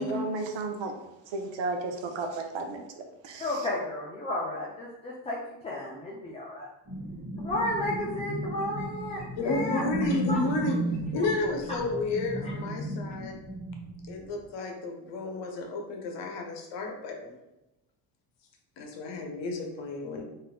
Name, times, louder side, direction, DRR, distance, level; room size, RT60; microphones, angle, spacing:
voice 1, 0.0-3.7, right 3 dB, 65° right, 4 dB, 0.7 m, -34 dB
voice 2, 3.4-6.7 7.4-9.9 10.3-10.5 11.7-11.8, left 1 dB, 15° left, -4 dB, 0.3 m, -33 dB
sound 1, 6.8-14.3, right 1 dB, 40° right, 1.4 m, -34 dB
voice 3, 9.3-10.8 11.1-13.4 14.1-17.4 18.8-20.2, left 3 dB, 60° left, 2 dB, 0.8 m, -32 dB
4.0 x 2.6 x 2.2 m, 0.94 s
cardioid pair, 115°, 49 cm